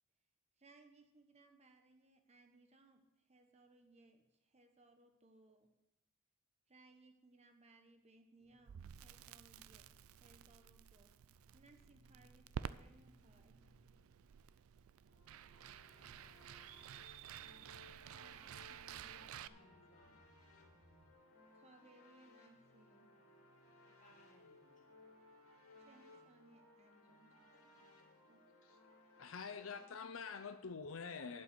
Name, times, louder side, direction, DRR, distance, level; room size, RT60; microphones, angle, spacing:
voice 1, 0.6-5.7 6.7-13.6 18.1-20.3 21.5-23.1 25.8-28.4, right 2 dB, 30° right, 5 dB, 1.0 m, -67 dB
sound 1, 8.4-21.1, equal, 60° right, 2.9 m, -72 dB
Crackle, 8.7-19.5, right 8 dB, 75° right, 0.4 m, -52 dB
sound 2, 15.1-29.8, left 2 dB, 90° left, 2.2 m, -64 dB
voice 2, 16.1-16.5 18.9-20.9 24.0-24.9, left 2 dB, 35° left, 0 dB, 2.4 m, -70 dB
voice 3, 29.2-31.4, left 5 dB, 70° left, 9 dB, 0.6 m, -46 dB
11.5 x 5.4 x 8.1 m, 0.91 s
head